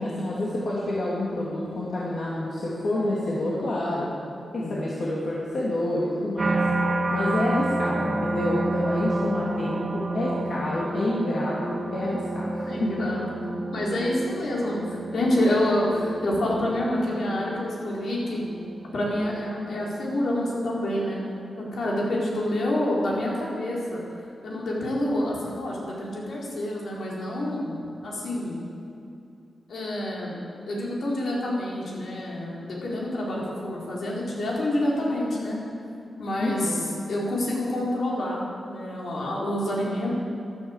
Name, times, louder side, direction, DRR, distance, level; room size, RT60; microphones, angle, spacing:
voice 1, 0.0-4.1 4.5-6.6 7.1-13.1 36.4-36.9, left 1 dB, 55° left, -6 dB, 2.7 m, -28 dB
voice 2, 4.5-4.8 12.7-13.2 13.7-18.4 18.9-21.2 21.6-24.0 24.4-28.6 29.7-30.3 30.7-35.6 36.2-36.8 37.1-40.1, left 1 dB, 75° left, -4 dB, 4.3 m, -27 dB
sound 1, 6.4-21.6 22.1-22.5, right 2 dB, 35° right, 1.5 m, -30 dB
13.0 x 12.0 x 8.2 m, 2.6 s
wide cardioid pair, 145°, 0 cm